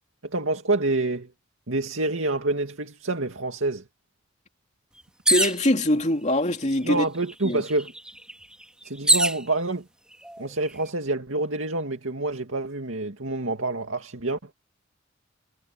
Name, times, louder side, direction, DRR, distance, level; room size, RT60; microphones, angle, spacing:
voice 1, 0.2-1.3 1.7-3.8 6.8-7.9 8.8-9.9 10.4-14.5, right 2 dB, 80° right, 2.3 m, -27 dB
voice 2, 5.3-7.0 7.4-7.6, left 1 dB, 35° left, 2.7 m, -23 dB
sound 1, 5.3-5.7 6.6-6.7 7.0-9.4 10.2-10.7, right 1 dB, 5° right, 2.0 m, -24 dB
head